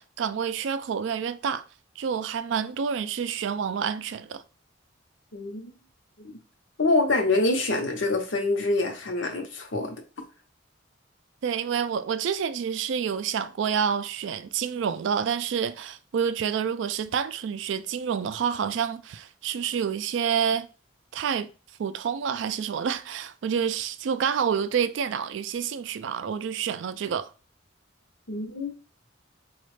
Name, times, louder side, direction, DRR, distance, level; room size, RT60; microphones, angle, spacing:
voice 1, 0.0-1.6 2.0-4.4 11.4-20.7 21.1-21.5 21.8-27.3, right 7 dB, 70° right, 0.3 m, -28 dB
voice 2, 5.3-5.7 6.2-6.4 6.8-9.9 28.3-28.7, left 2 dB, 75° left, 0.8 m, -25 dB
4.1 x 2.3 x 3.2 m
head